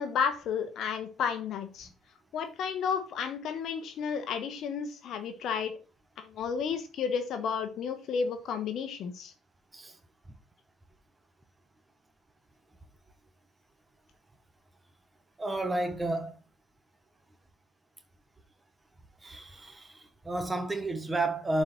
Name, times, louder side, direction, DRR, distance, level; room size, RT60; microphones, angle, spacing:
voice 1, 0.0-1.9 2.3-5.8 6.2-9.3, left 6 dB, 60° left, 1.2 m, -32 dB
voice 2, 15.4-16.3 19.2-21.6, right 2 dB, 15° right, 1.5 m, -31 dB
7.4 x 4.8 x 5.8 m
cardioid pair, 100°, 0 cm